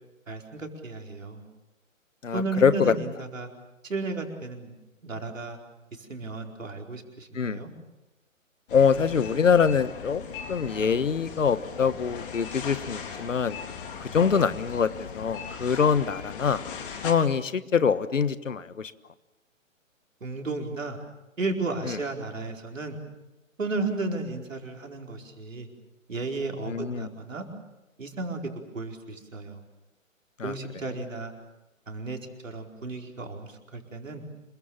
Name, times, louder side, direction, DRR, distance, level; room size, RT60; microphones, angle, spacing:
voice 1, 0.3-1.4 2.3-3.5 3.8-4.7 5.0-5.6 6.0-7.7 20.2-21.0 21.4-23.0 23.6-25.7 26.1-27.5 28.0-28.4 28.7-29.6 30.4-31.3 31.9-34.2, right 3 dB, 70° right, 2 dB, 4.8 m, -33 dB
voice 2, 2.2-2.9 7.3-7.6 8.7-10.2 10.5-13.6 14.0-16.6 17.0-18.9 21.8-22.0 26.7-27.1 30.4-30.5, left 6 dB, 70° left, 15 dB, 1.4 m, -24 dB
sound 1, 8.7-17.1, left 6 dB, 40° left, 3.7 m, -39 dB
27.5 x 23.0 x 7.3 m, 0.98 s
figure-of-eight pair, 130°, 40 cm